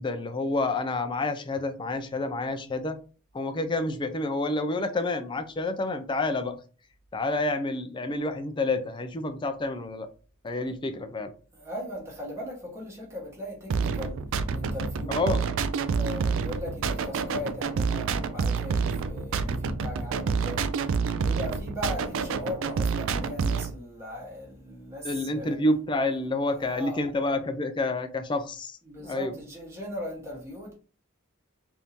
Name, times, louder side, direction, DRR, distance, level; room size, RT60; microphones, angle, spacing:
voice 1, 0.0-3.0 3.3-6.5 7.1-10.1 10.4-11.3 15.1-15.4 25.0-29.4, left 2 dB, 20° left, 0.4 m, -29 dB
voice 2, 11.5-14.2 14.5-15.1 15.9-20.6 21.1-25.6 26.5-27.0 28.8-30.7, left 1 dB, 10° right, 1.1 m, -38 dB
sound 1, 13.7-23.7, right 5 dB, 60° right, 0.3 m, -28 dB
3.5 x 2.6 x 2.8 m
head